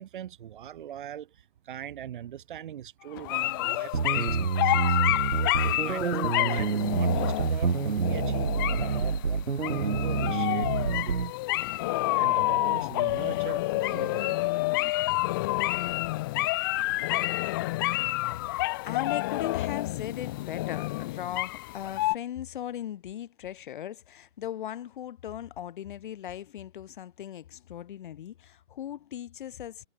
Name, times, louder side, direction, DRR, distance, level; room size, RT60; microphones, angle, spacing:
voice 1, 0.0-5.0 5.2-11.1 12.1-14.5, right 10 dB, 40° right, 2.9 m, -41 dB
sound 1, 3.2-22.2, left 19 dB, 20° left, 0.8 m, -29 dB
sound 2, 3.9-11.3, right 5 dB, 80° right, 2.0 m, -27 dB
voice 2, 18.4-29.9, left 11 dB, 40° left, 3.4 m, -38 dB
figure-of-eight pair, 140°, 37 cm